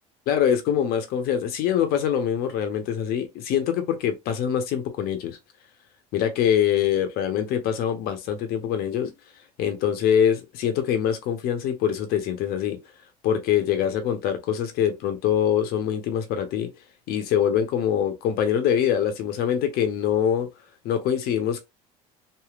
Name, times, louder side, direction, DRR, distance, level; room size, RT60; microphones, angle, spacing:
voice 1, 0.3-5.4 6.1-9.1 9.6-12.8 13.2-16.7 17.1-20.5 20.8-21.6, left 9 dB, 65° left, 0.9 m, -24 dB
3.2 x 2.6 x 2.4 m
supercardioid pair, 85°, 17 cm